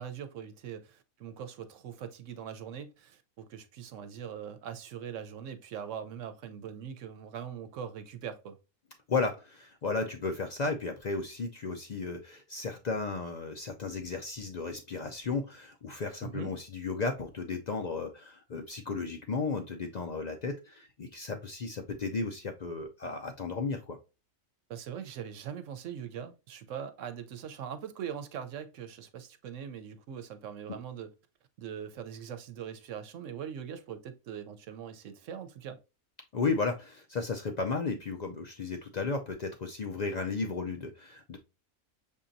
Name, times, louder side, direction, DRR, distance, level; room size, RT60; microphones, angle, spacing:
voice 1, 0.0-8.6 16.2-16.5 24.7-31.1 31.6-35.8, right 8 dB, 70° right, 0.9 m, -41 dB
voice 2, 9.1-24.0 30.7-30.8 36.3-41.4, left 4 dB, 75° left, 0.4 m, -34 dB
6.7 x 2.8 x 2.5 m
omnidirectional pair, 1.4 m